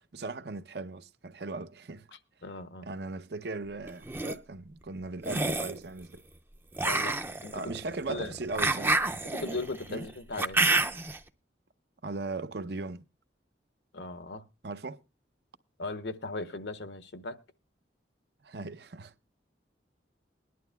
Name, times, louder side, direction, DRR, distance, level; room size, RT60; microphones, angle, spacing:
voice 1, 0.1-2.1 2.8-6.2 7.5-9.2 9.9-10.0 12.0-13.0 14.6-15.0 18.4-19.1, right 3 dB, 60° right, 0.7 m, -38 dB
voice 2, 2.4-2.9 6.8-7.5 8.1-8.4 9.2-10.6 13.9-14.4 15.8-17.4, left 2 dB, 70° left, 0.9 m, -38 dB
sound 1, 3.9-4.3 5.2-5.8 6.8-11.2, right 2 dB, 10° right, 0.5 m, -29 dB
21.5 x 11.0 x 2.2 m
head